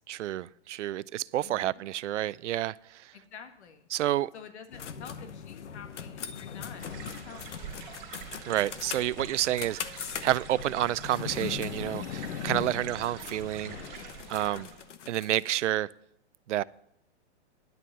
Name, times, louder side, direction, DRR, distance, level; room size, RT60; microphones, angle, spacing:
voice 1, 0.1-3.0 3.9-4.3 8.5-13.8 14.3-14.7 15.1-15.9 16.5-16.6, right 13 dB, 85° right, 0.5 m, -29 dB
voice 2, 1.4-1.8 3.1-3.9 4.3-7.8 12.8-13.0 14.3-14.7, left 7 dB, 70° left, 1.7 m, -48 dB
sound 1, 4.7-15.6, left 8 dB, 85° left, 1.0 m, -40 dB
sound 2, 6.8-15.0, right 7 dB, 25° right, 3.6 m, -46 dB
11.0 x 6.8 x 7.3 m
hypercardioid pair, 165°, 35 cm